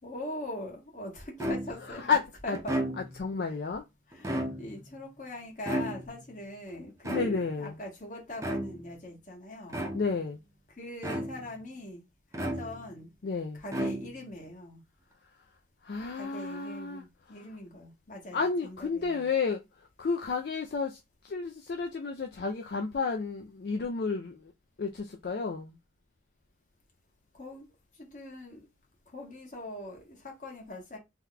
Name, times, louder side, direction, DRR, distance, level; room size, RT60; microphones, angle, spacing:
voice 1, 0.0-2.8 4.1-9.9 10.8-12.0 12.3-13.1 13.5-14.8 16.1-19.3 27.3-27.7 27.9-28.7 29.1-31.0, left 1 dB, 45° left, 1.1 m, -42 dB
sound 1, 1.4-2.0 2.5-3.3 4.1-4.9 5.7-6.3 7.0-7.7 8.4-8.9 9.7-10.3 11.0-11.6 12.3-13.0 13.7-14.4, right 1 dB, 15° right, 0.5 m, -34 dB
voice 2, 1.9-2.2 2.5-2.6 3.2-3.8 7.1-7.8 9.9-10.4 13.2-13.6 15.8-17.0 18.3-19.6 20.0-24.5 24.8-25.8, left 4 dB, 65° left, 0.4 m, -31 dB
2.9 x 2.2 x 3.7 m
head